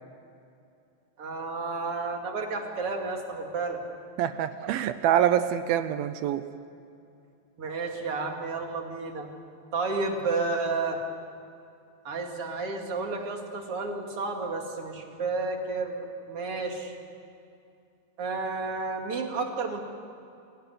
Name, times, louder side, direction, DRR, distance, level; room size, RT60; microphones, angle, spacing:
voice 1, 1.2-3.8 7.6-9.3 9.7-11.0 12.0-17.0 18.2-19.8, right 3 dB, 40° right, 2 dB, 2.7 m, -31 dB
voice 2, 4.2-6.4, right 10 dB, 75° right, 11 dB, 2.3 m, -25 dB
26.5 x 17.5 x 9.7 m, 2.6 s
omnidirectional pair, 4.8 m